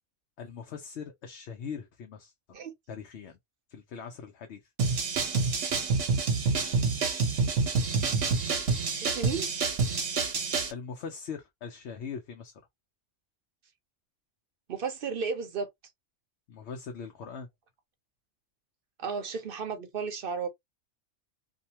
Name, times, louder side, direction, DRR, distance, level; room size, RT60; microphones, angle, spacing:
voice 1, 0.4-2.3 2.9-3.4 3.7-4.6 10.7-12.5 16.5-17.5, left 6 dB, 70° left, 0.9 m, -41 dB
sound 1, 4.8-10.7, right 4 dB, 85° right, 1.2 m, -27 dB
voice 2, 9.0-9.5 14.7-15.7 19.0-20.5, right 5 dB, 55° right, 0.7 m, -33 dB
2.7 x 2.1 x 2.8 m
omnidirectional pair, 1.2 m